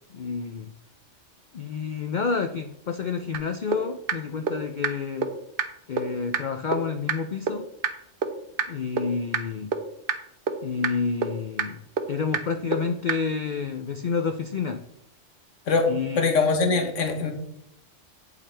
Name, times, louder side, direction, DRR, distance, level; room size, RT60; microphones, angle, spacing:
voice 1, 0.1-0.7 1.5-5.3 5.9-7.7 8.7-9.7 10.6-11.8 12.1-14.8 15.9-16.2, left 5 dB, 55° left, 7 dB, 0.5 m, -29 dB
sound 1, 3.3-3.4 3.7-3.8 4.1-4.2 4.5-4.6 4.8-4.9 5.2-5.3 5.6-5.7 6.0-6.1 6.3-6.4 6.7-6.8 7.1-7.2 7.5-7.6 7.8-7.9 8.2-8.3 8.6-8.7 9.0-9.1 9.3-9.4 9.7-9.8 10.1-10.2 10.5-10.6 10.8-10.9 11.2-11.3 11.6-11.7 12.0-12.1 12.3-12.4 12.7-12.8 13.1-13.2, right 6 dB, 50° right, 0.9 m, -24 dB
voice 2, 16.2-17.3, left 4 dB, 85° left, 5 dB, 1.5 m, -22 dB
8.5 x 8.5 x 3.3 m, 0.76 s
omnidirectional pair, 1.3 m